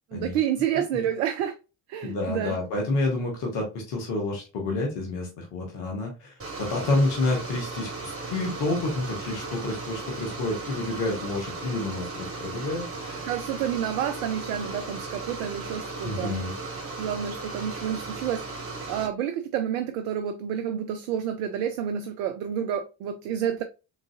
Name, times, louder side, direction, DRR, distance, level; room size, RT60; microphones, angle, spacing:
voice 1, 0.1-1.6 1.9-2.5 13.3-16.4 17.0-23.6, right 9 dB, 75° right, 0.5 m, -29 dB
voice 2, 2.0-13.3 16.0-16.5, left 2 dB, 70° left, 1.5 m, -29 dB
sound 1, 6.4-19.1, right 3 dB, 30° right, 1.7 m, -36 dB
3.9 x 3.7 x 2.4 m
hypercardioid pair, 45°, 44 cm